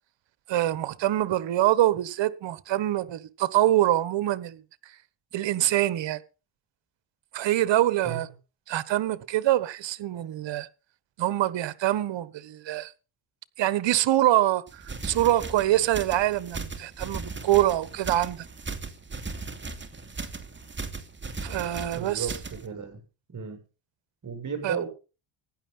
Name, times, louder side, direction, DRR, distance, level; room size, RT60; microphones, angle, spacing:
voice 1, 0.5-4.6 5.3-6.2 7.3-8.3 8.7-10.7 11.2-12.9 13.6-18.5 21.4-22.3 24.6-24.8, right 14 dB, 70° right, 1.4 m, -25 dB
sound 1, 14.7-22.7, right 3 dB, 25° right, 2.6 m, -37 dB
voice 2, 21.8-23.0 23.3-23.6 24.2-24.9, right 7 dB, 40° right, 7.0 m, -34 dB
15.5 x 10.5 x 5.6 m
cardioid pair, 80°, 46 cm